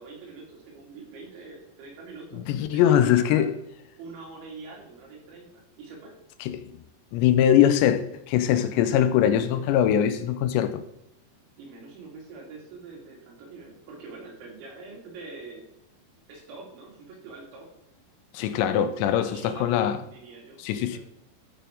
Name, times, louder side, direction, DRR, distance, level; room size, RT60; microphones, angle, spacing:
voice 1, 0.0-3.5 4.0-5.5 5.8-6.1 11.6-15.6 16.3-17.7 19.1-21.0, right 3 dB, 85° right, 5.0 m, -44 dB
voice 2, 2.5-3.5 6.5-6.6 7.1-10.8 18.3-20.0 20.6-21.0, left 10 dB, 85° left, 2.8 m, -22 dB
13.5 x 4.4 x 5.1 m
omnidirectional pair, 5.2 m